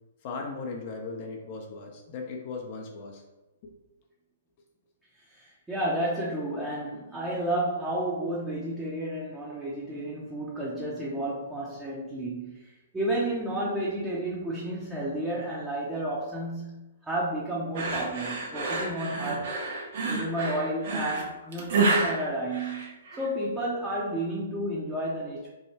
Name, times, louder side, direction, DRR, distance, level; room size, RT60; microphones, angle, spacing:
voice 1, 0.2-3.2 3.6-3.7, left 4 dB, 45° left, 1 dB, 0.7 m, -37 dB
voice 2, 5.3-12.7 12.9-19.5 20.1-25.5, right 1 dB, 10° right, -7 dB, 0.8 m, -31 dB
sound 1, 17.8-23.3, right 3 dB, 60° right, 0.9 m, -29 dB
3.5 x 2.2 x 4.2 m, 1.0 s
hypercardioid pair, 130°, 0 cm